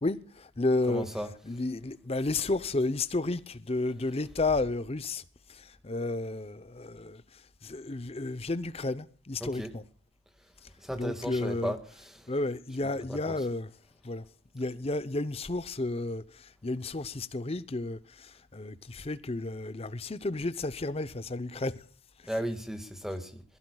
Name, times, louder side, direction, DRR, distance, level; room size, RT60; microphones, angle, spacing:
voice 1, 0.0-5.2 5.5-9.8 11.0-11.8 12.3-13.7 14.0-14.3 14.5-21.8 22.2-22.4, left 2 dB, 30° left, 0.7 m, -32 dB
voice 2, 0.9-1.3 9.4-9.7 10.8-12.3 12.8-13.3 22.3-23.4, equal, ahead, 1.7 m, -36 dB
22.5 x 16.5 x 2.3 m
head